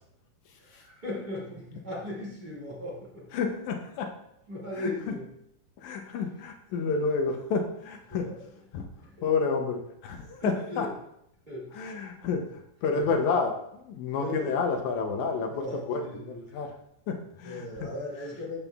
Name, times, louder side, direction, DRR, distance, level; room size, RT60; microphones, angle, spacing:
voice 1, 0.6-3.2 4.5-5.3 8.1-8.4 9.0-9.1 10.4-10.9 11.5-11.9 12.9-13.1 14.1-14.6 15.5-16.6 17.4-18.6, left 1 dB, 30° right, -6 dB, 0.8 m, -37 dB
voice 2, 3.3-4.1 4.8-5.1 5.8-8.3 8.7-8.9 9.2-10.9 11.7-16.7 17.1-17.9, left 4 dB, 85° left, 3 dB, 1.6 m, -30 dB
15.0 x 5.4 x 2.3 m, 0.76 s
omnidirectional pair, 4.3 m